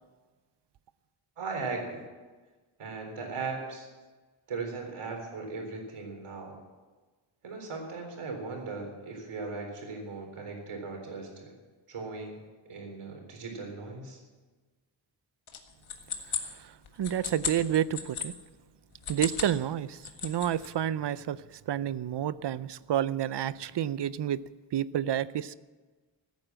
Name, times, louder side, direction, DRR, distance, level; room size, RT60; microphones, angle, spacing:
voice 1, 1.4-2.0 2.8-3.9 4.5-6.6 7.4-11.5 11.9-12.4 12.7-14.2, right 4 dB, 85° right, 2 dB, 4.1 m, -38 dB
sound 1, 15.5-18.3 18.9-19.6 19.9-20.7, left 7 dB, 75° left, 1.7 m, -35 dB
voice 2, 17.0-18.3 19.1-21.4 21.7-24.4 24.7-25.5, right 10 dB, 60° right, 17 dB, 0.5 m, -29 dB
16.0 x 9.4 x 7.5 m, 1.3 s
wide cardioid pair, 155°, 49 cm